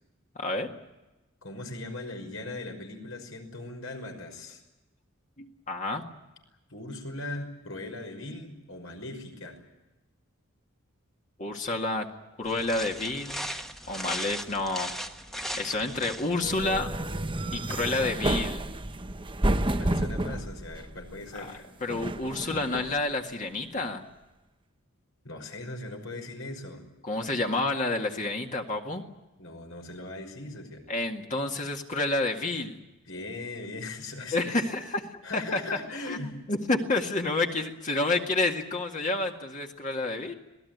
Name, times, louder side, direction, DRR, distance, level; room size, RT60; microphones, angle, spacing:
voice 1, 0.4-0.7 5.4-6.0 11.4-12.1 12.4-13.5 13.9-14.9 15.6-16.9 17.5-18.6 21.3-24.0 27.0-29.0 30.9-32.8 34.3-35.6 36.1-36.2 36.5-40.3, left 2 dB, 35° left, 2 dB, 2.0 m, -29 dB
voice 2, 1.4-4.6 6.7-9.6 19.8-21.7 25.2-26.9 29.4-30.9 33.1-34.6 35.2-36.5, left 2 dB, 75° left, 4 dB, 5.7 m, -39 dB
sound 1, 12.4-16.5, equal, ahead, 1.3 m, -37 dB
sound 2, 16.4-21.3 21.9-23.0, right 1 dB, 25° right, 0.9 m, -30 dB
26.0 x 18.5 x 9.4 m, 1.0 s
head